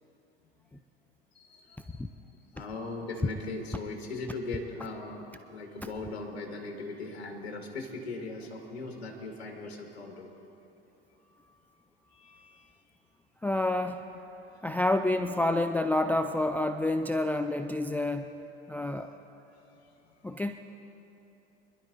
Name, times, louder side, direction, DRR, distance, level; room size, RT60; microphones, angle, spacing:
voice 1, 1.3-2.0 2.3-10.3 11.0-11.5 11.9-13.0 14.5-14.7 18.7-19.1 19.6-20.4, left 3 dB, 80° left, 1 dB, 1.7 m, -40 dB
voice 2, 13.4-14.0 14.6-18.3 18.7-19.1 20.2-20.6, left 1 dB, 5° left, 7 dB, 0.4 m, -28 dB
25.5 x 11.5 x 2.6 m, 2.8 s
hypercardioid pair, 75°, 31 cm